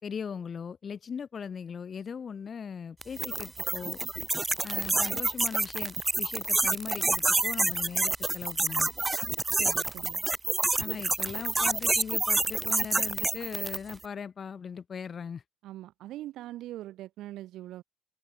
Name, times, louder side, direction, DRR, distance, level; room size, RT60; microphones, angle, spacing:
voice 1, 0.0-4.0 4.6-8.9 10.8-15.4, left 6 dB, 40° left, 4.9 m, -39 dB
sound 1, 3.0-13.9, right 3 dB, 20° right, 1.0 m, -28 dB
voice 2, 9.6-10.2 15.6-17.8, right 14 dB, 80° right, 1.8 m, -42 dB
open air
cardioid pair, 95°, 0 cm